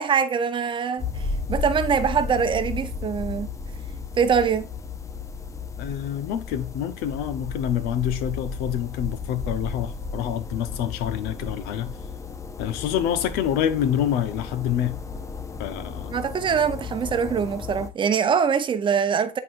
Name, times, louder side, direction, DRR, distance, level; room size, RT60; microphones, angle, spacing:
voice 1, 0.0-3.5 4.2-4.7 16.1-19.4, right 6 dB, 30° right, 0.7 m, -23 dB
sound 1, 1.0-17.9, left 4 dB, 20° left, 0.6 m, -34 dB
voice 2, 5.8-12.0 12.6-15.0 15.6-16.2, left 10 dB, 80° left, 0.8 m, -27 dB
9.6 x 4.0 x 2.6 m
cardioid pair, 120°, 15 cm